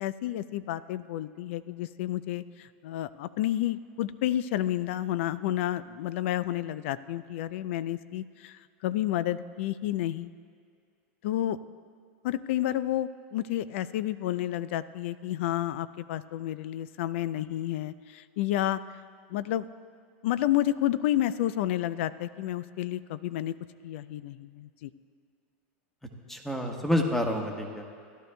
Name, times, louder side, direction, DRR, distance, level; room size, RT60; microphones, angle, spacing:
voice 1, 0.0-10.3 11.2-11.6 12.2-18.8 19.3-19.7 20.2-23.5 23.8-24.9, left 13 dB, 70° left, 16 dB, 0.4 m, -30 dB
voice 2, 26.3-27.8, left 1 dB, 5° left, 2 dB, 1.2 m, -28 dB
16.5 x 12.0 x 2.3 m, 2.2 s
supercardioid pair, 125°, 7 cm